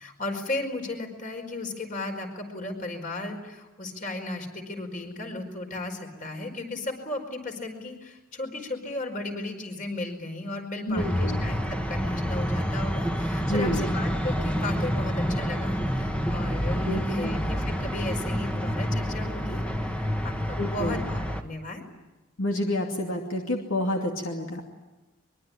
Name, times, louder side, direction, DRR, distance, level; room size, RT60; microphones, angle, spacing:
voice 1, 0.0-21.8, left 2 dB, 40° left, 4 dB, 4.9 m, -35 dB
voice 2, 10.9-11.5 13.4-13.9 16.8-17.4 20.6-21.0 22.4-24.8, left 1 dB, 70° left, 1 dB, 2.7 m, -29 dB
sound 1, 11.0-21.4, equal, 5° left, 1.5 m, -28 dB
23.5 x 23.5 x 9.8 m, 1.1 s
head